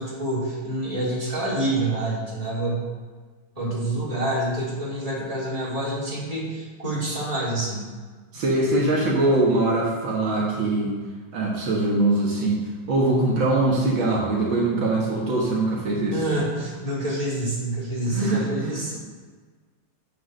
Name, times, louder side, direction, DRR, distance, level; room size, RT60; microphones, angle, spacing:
voice 1, 0.0-2.9 3.6-7.8 16.1-19.0, right 1 dB, 15° right, -7 dB, 3.5 m, -27 dB
voice 2, 8.3-10.9 11.3-12.6 12.9-16.2 18.1-19.1, right 2 dB, 70° right, -4 dB, 2.4 m, -22 dB
8.3 x 6.8 x 6.5 m, 1.5 s
omnidirectional pair, 2.2 m